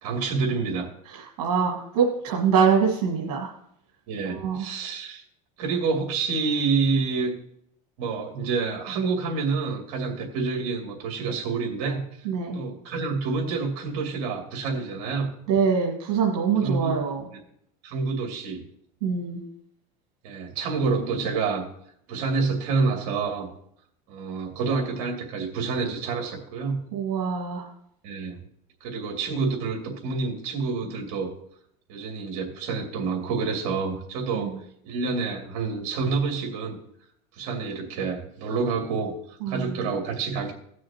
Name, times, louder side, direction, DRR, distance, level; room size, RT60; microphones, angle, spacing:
voice 1, 0.0-0.9 4.1-5.2 5.6-7.3 8.0-12.3 12.5-15.3 16.6-17.0 17.8-18.6 20.2-21.7 22.1-23.5 24.1-26.8 28.0-28.4 28.8-31.3 31.9-34.5 34.8-36.8 37.3-39.1 39.5-40.5, right 4 dB, 65° right, 1 dB, 2.5 m, -28 dB
voice 2, 1.1-3.5 4.2-4.7 12.3-12.6 15.5-17.3 19.0-19.4 26.9-27.7 34.3-34.6 39.4-39.8, right 6 dB, 85° right, -1 dB, 1.6 m, -24 dB
17.5 x 6.3 x 2.9 m, 0.71 s
supercardioid pair, 135°, 19 cm